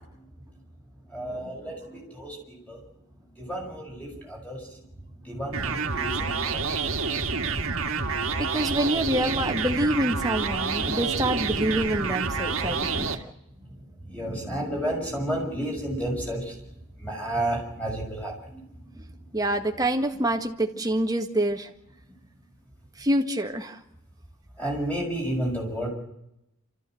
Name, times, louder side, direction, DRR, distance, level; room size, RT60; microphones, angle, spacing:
voice 1, 1.1-2.8 3.4-4.6 5.2-6.8 14.1-16.5 17.0-18.6 24.6-25.9, right 1 dB, 5° left, -1 dB, 6.5 m, -31 dB
sound 1, 5.5-13.1, right 4 dB, 70° right, 1.9 m, -28 dB
voice 2, 8.4-13.1 19.3-21.7 23.0-23.8, right 1 dB, 15° right, 4 dB, 1.7 m, -26 dB
27.5 x 14.5 x 7.8 m, 0.83 s
head